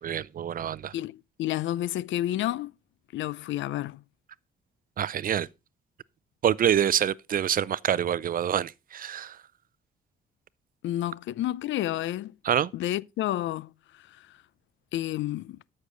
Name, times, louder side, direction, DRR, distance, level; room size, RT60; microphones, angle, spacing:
voice 1, 0.0-0.9 5.0-5.5 6.4-9.4 12.4-12.7, right 9 dB, 45° right, 0.5 m, -26 dB
voice 2, 0.9-2.7 3.1-4.0 10.8-12.3 12.7-14.4 14.9-15.6, left 13 dB, 70° left, 0.5 m, -30 dB
13.0 x 6.6 x 3.8 m
cardioid pair, 90°, 20 cm